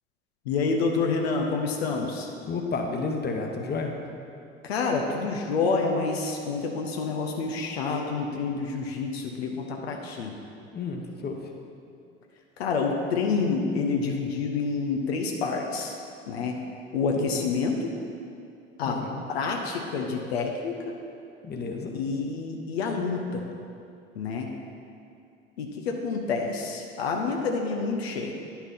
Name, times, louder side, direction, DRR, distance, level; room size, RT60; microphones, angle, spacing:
voice 1, 0.5-2.3 4.6-10.4 12.6-16.0 16.3-16.6 16.9-17.9 18.8-19.0 19.3-20.8 21.9-23.4 24.2-24.5 25.6-28.3, left 4 dB, 80° left, 1 dB, 0.8 m, -28 dB
voice 2, 2.5-3.9 10.7-11.4 17.2-17.5 18.9-19.2 21.4-21.9, left 4 dB, 30° left, 2 dB, 1.1 m, -31 dB
9.7 x 5.9 x 4.1 m, 2.5 s
hypercardioid pair, 65°, 31 cm